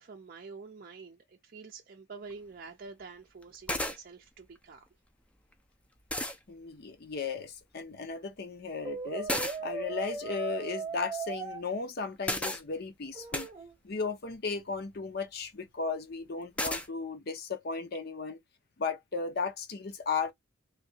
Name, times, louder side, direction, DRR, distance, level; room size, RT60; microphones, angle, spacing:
voice 1, 0.0-4.8, right 4 dB, 45° right, 0.5 m, -47 dB
sound 1, 2.3-2.4 3.4-3.5 3.7-4.0 5.5-5.6 6.1-6.4 9.3-9.6 12.2-12.6 13.3-13.5 16.6-16.9, left 1 dB, 5° left, 0.5 m, -32 dB
voice 2, 6.5-9.3 9.6-13.5 13.8-18.4 18.8-20.3, left 4 dB, 50° left, 0.7 m, -35 dB
Brass instrument, 8.8-11.6 13.1-13.7, right 4 dB, 20° right, 0.9 m, -37 dB
3.2 x 2.7 x 2.7 m
head